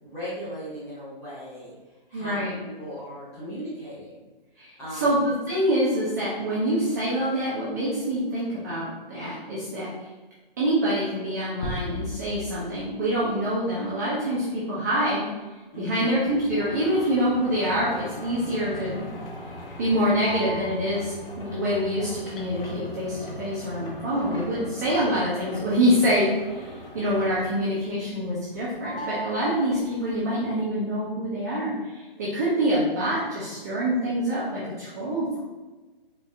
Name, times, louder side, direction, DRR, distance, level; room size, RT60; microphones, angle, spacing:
voice 1, 0.0-1.7 2.1-4.2 4.6-5.3 15.7-16.2 24.1-24.4 29.6-29.8, equal, 10° left, -10 dB, 0.9 m, -37 dB
voice 2, 2.1-2.5 4.6-9.9 10.6-15.3 15.8-19.0 19.8-26.3 26.9-35.4, equal, 20° right, -10 dB, 0.6 m, -26 dB
sound 1, 11.6-13.6, left 1 dB, 45° left, 0.9 m, -35 dB
sound 2, 16.2-27.7 28.0-28.6 28.8-30.1, equal, 70° left, 1.3 m, -39 dB
4.4 x 2.9 x 3.6 m, 1.2 s
hypercardioid pair, 170°, 29 cm